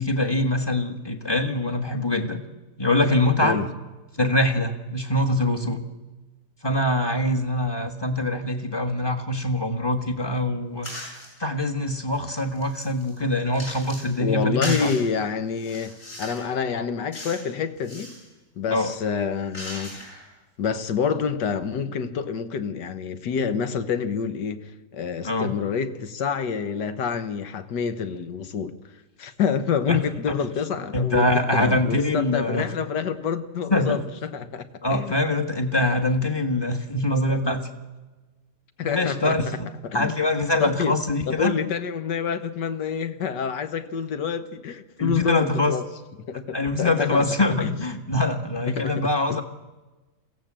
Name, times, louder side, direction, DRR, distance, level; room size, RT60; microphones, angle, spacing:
voice 1, 0.0-2.4 2.8-3.6 4.2-5.8 6.6-11.1 11.4-14.9 18.7-18.9 25.2-25.6 29.9-30.0 30.3-30.4 30.9-32.6 33.7-34.0 34.8-37.7 38.8-39.5 39.9-41.5 45.0-45.7 46.5-49.4, left 1 dB, 15° left, 1.5 m, -24 dB
sound 1, 10.8-11.3 11.9-14.1 14.6-15.0 15.5-16.5 17.1-17.5 17.8-18.2 18.8-20.3, left 1 dB, 40° left, 8.4 m, -37 dB
voice 2, 14.2-18.1 18.6-20.0 20.6-28.8 29.2-35.2 38.8-40.1 40.6-40.9 41.3-45.9 46.3-47.3 47.6-47.8 48.7-48.9 49.3-49.4, left 6 dB, 80° left, 1.8 m, -27 dB
23.0 x 16.0 x 7.5 m
omnidirectional pair, 1.8 m